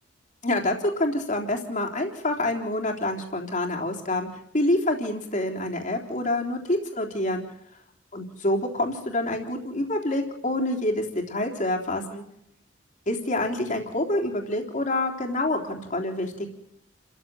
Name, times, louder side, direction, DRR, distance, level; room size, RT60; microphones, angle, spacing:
voice 1, 0.4-4.3 4.5-7.4 8.1-12.2 13.1-16.5, left 1 dB, 40° left, 1 dB, 3.5 m, -27 dB
30.0 x 14.5 x 7.7 m, 0.76 s
head